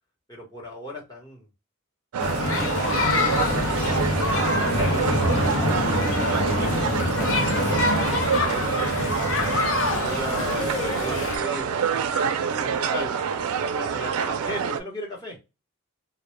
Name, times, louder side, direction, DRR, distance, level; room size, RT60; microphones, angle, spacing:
voice 1, 0.3-1.5 2.2-2.7 3.6-8.8 9.5-11.8 12.2-13.1 13.8-15.4, left 1 dB, 15° left, -3 dB, 0.8 m, -37 dB
sound 1, 2.1-14.8, right 7 dB, 85° right, 0.3 m, -27 dB
sound 2, 2.2-11.4, left 2 dB, 70° left, 0.6 m, -25 dB
2.1 x 2.1 x 3.0 m, 0.27 s
head